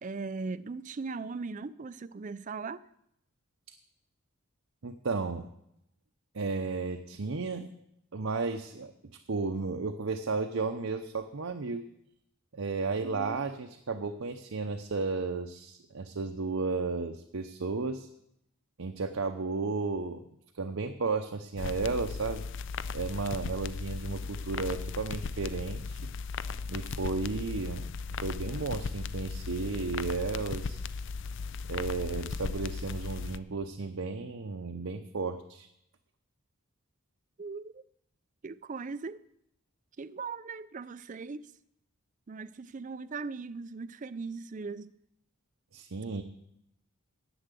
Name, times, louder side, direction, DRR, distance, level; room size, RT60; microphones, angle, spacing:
voice 1, 0.0-2.8 13.0-13.5 37.4-37.8 38.4-39.2 40.0-41.4 42.3-44.9, right 4 dB, 35° right, 0.4 m, -39 dB
voice 2, 4.8-5.5 6.3-7.7 8.1-8.9 9.3-11.8 12.5-18.1 18.8-20.2 20.5-22.4 22.9-26.0 26.7-30.8 31.7-35.7 45.7-46.2, right 4 dB, 70° right, 0.8 m, -33 dB
sound 1, 21.6-33.4, left 4 dB, 55° left, 0.4 m, -37 dB
10.0 x 8.0 x 8.2 m
head